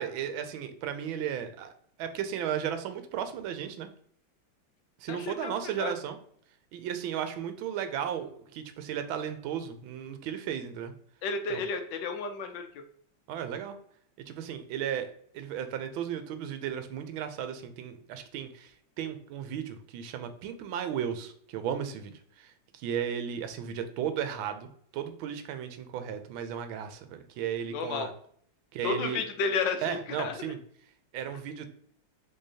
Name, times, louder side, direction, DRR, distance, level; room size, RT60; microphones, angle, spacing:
voice 1, 0.0-1.7 2.0-3.9 5.0-6.2 6.7-10.9 11.5-11.6 13.3-13.8 14.3-18.7 19.0-28.1 28.7-29.2 29.8-30.6 31.1-31.7, right 9 dB, 75° right, 8 dB, 1.3 m, -35 dB
voice 2, 5.1-5.9 11.2-12.8 27.7-28.1 28.8-30.5, left 4 dB, 75° left, 6 dB, 1.1 m, -32 dB
5.4 x 3.3 x 2.7 m, 0.63 s
omnidirectional pair, 2.4 m